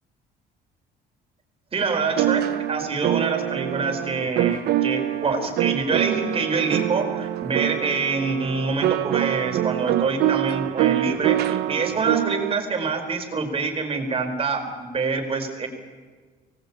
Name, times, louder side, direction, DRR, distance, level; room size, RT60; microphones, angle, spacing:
voice 1, 1.7-15.7, right 4 dB, 35° right, 4 dB, 4.7 m, -26 dB
sound 1, 2.1-12.5, right 13 dB, 75° right, 0.9 m, -25 dB
24.0 x 19.5 x 8.9 m, 1.5 s
cardioid pair, 110°, 17 cm